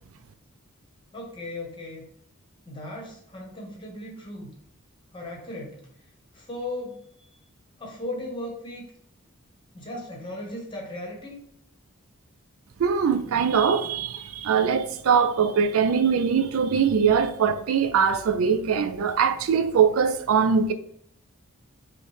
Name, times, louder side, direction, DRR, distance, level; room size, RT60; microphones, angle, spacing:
voice 1, 1.1-2.1 2.7-4.5 5.1-5.8 6.3-7.0 7.8-8.9 9.7-11.3, left 1 dB, 20° left, 0.9 m, -36 dB
voice 2, 12.8-20.7, right 6 dB, 75° right, 0.4 m, -22 dB
5.6 x 2.1 x 3.2 m
head